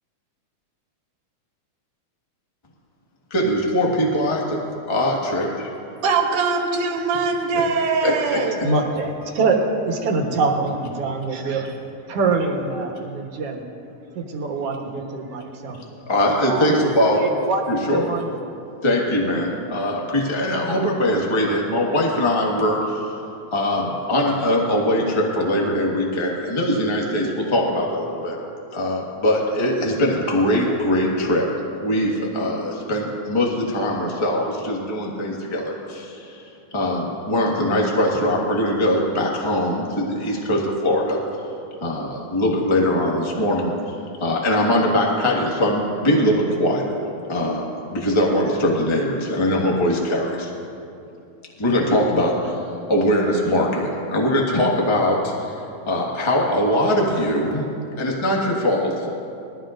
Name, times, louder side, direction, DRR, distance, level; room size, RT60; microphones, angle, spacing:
voice 1, 3.3-4.6 4.9-5.7 8.0-8.4 16.1-17.2 17.7-18.0 18.8-23.1 23.5-28.4 28.7-31.5 31.8-36.4 36.7-41.2 41.8-43.9 44.2-46.9 47.3-47.6 47.9-50.5 51.6-52.6 52.9-59.1, left 1 dB, 40° left, 0.4 m, -21 dB
voice 2, 6.0-8.6, right 4 dB, 80° right, 2.7 m, -22 dB
voice 3, 8.6-11.8 12.1-13.6 14.2-15.8 16.5-16.8 17.1-17.6 17.9-18.3, right 3 dB, 60° right, 1.9 m, -24 dB
21.0 x 14.5 x 2.6 m
omnidirectional pair, 3.6 m